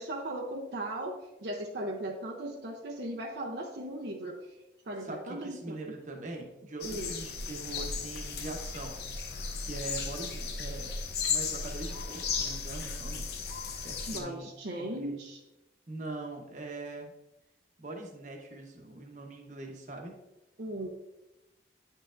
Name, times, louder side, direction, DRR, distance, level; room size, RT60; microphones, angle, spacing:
voice 1, 0.0-4.4 4.8-5.8 6.8-7.1 14.1-15.4 20.6-20.9, right 1 dB, 70° right, -1 dB, 0.7 m, -37 dB
voice 2, 5.0-9.0 9.6-10.9 11.3-13.3 13.8-14.5 14.8-15.2 15.9-17.1 17.8-20.1, right 2 dB, 45° right, 2 dB, 1.0 m, -42 dB
sound 1, 6.8-14.2, left 5 dB, 60° left, 0.7 m, -35 dB
9.2 x 5.5 x 2.5 m, 0.95 s
head